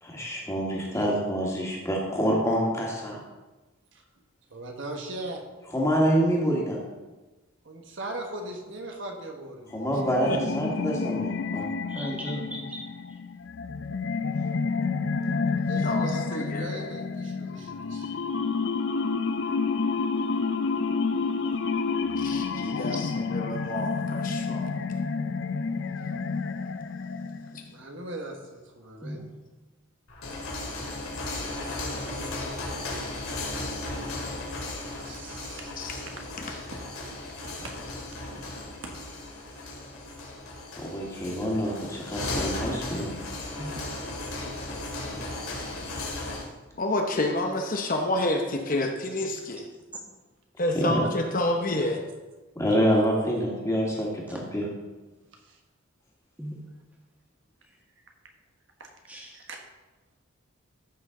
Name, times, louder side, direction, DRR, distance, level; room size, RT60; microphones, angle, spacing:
voice 1, 0.0-3.2 5.7-6.8 9.7-11.7 40.8-43.2 50.7-51.0 52.6-54.6, equal, 15° left, -2 dB, 2.0 m, -26 dB
voice 2, 4.5-5.4 7.6-9.8 15.6-18.2 27.7-29.3 34.9-35.7 37.4-38.9 42.9-43.0 43.5-44.5 45.1-46.1 50.8-51.3 51.6-51.8 55.3-55.6 58.8-58.9 59.3-59.6, right 2 dB, 60° right, 2 dB, 1.3 m, -40 dB
sound 1, 9.8-27.7, left 4 dB, 60° left, 0.4 m, -29 dB
voice 3, 11.9-13.2 22.5-23.2 29.0-29.2 43.6-43.7 54.3-54.4 56.4-56.5 59.1-59.4, equal, 5° right, -1 dB, 1.6 m, -38 dB
voice 4, 15.8-16.9 22.2-24.7 35.8-36.0 36.4-36.5 46.8-49.7 50.6-52.0, left 1 dB, 40° left, 3 dB, 0.8 m, -29 dB
sound 2, 30.1-46.5, left 2 dB, 85° left, 2.6 m, -35 dB
14.0 x 6.3 x 3.8 m, 1.2 s
head